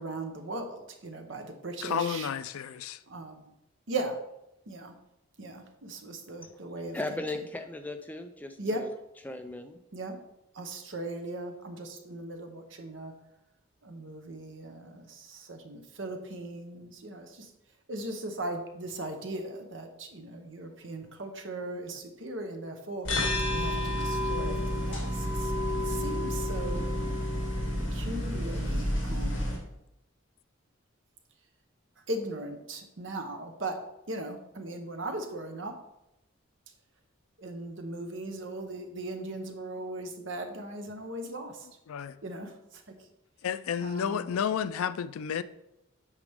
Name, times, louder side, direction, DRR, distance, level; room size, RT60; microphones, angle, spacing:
voice 1, 0.0-2.3 3.1-3.5 3.9-4.2 4.7-5.0 5.4-7.2 8.6-8.9 9.9-10.2 10.5-13.1 13.8-17.5 17.9-25.5 25.8-26.8 27.9-29.5 32.1-33.8 34.1-35.8 37.4-41.7 42.2-42.8 43.8-44.3, right 2 dB, 60° right, 0.9 m, -38 dB
voice 2, 1.8-3.0 41.9-42.2 43.4-45.4, left 8 dB, 90° left, 0.4 m, -31 dB
voice 3, 6.9-8.9 9.2-9.8, left 2 dB, 10° left, 0.4 m, -37 dB
sound 1, 23.0-29.5, left 1 dB, 60° left, 2.3 m, -30 dB
8.2 x 5.0 x 3.5 m
head